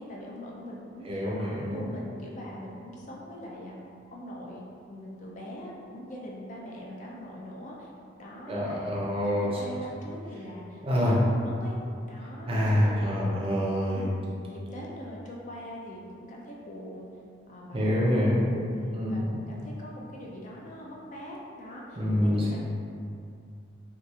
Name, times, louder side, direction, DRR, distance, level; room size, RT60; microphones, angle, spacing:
voice 1, 0.0-3.8 4.1-7.9 8.2-11.8 12.0-13.4 13.9-14.2 14.5-17.1 17.5-22.6, equal, 40° left, -3 dB, 0.4 m, -42 dB
voice 2, 1.0-1.9 8.5-9.8 10.8-11.2 12.5-14.1 17.7-18.5 18.9-19.4 22.0-22.6, equal, 30° right, -5 dB, 0.6 m, -26 dB
2.9 x 2.4 x 3.5 m, 2.4 s
head